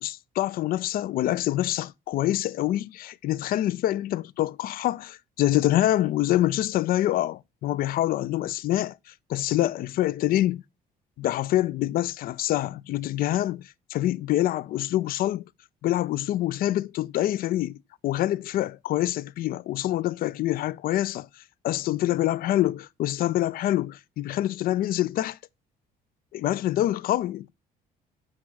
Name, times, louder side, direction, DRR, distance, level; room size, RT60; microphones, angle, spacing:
voice 1, 0.0-10.6 11.2-13.6 13.9-15.5 15.8-17.8 18.0-25.4 26.3-27.5, left 14 dB, 60° left, 0.4 m, -26 dB
7.5 x 5.9 x 6.1 m
cardioid pair, 110°, 17 cm